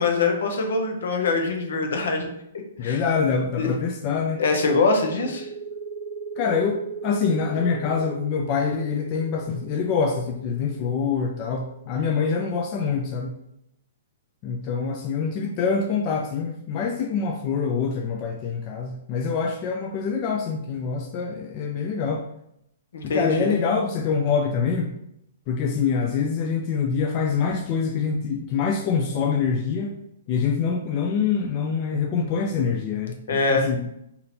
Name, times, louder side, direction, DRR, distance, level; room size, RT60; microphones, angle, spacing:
voice 1, 0.0-2.3 2.8-3.0 3.6-3.7 4.4-5.5 22.9-23.6 33.3-33.7, left 3 dB, 70° left, 3 dB, 0.8 m, -23 dB
voice 2, 2.8-4.4 6.4-13.3 14.4-22.2 23.0-24.9 25.5-29.9 30.3-34.0, left 5 dB, 40° left, 1 dB, 0.4 m, -25 dB
sound 1, 5.1-12.4, right 4 dB, 75° right, 0.6 m, -38 dB
4.2 x 2.7 x 2.6 m, 0.77 s
hypercardioid pair, 130°, 0 cm